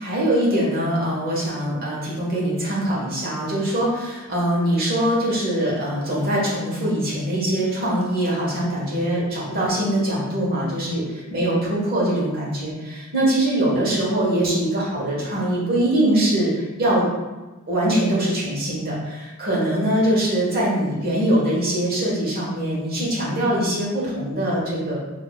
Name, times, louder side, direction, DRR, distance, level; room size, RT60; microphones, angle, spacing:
voice 1, 0.0-17.0 17.7-25.0, right 1 dB, 45° right, -5 dB, 1.3 m, -22 dB
5.9 x 2.9 x 2.3 m, 1.2 s
head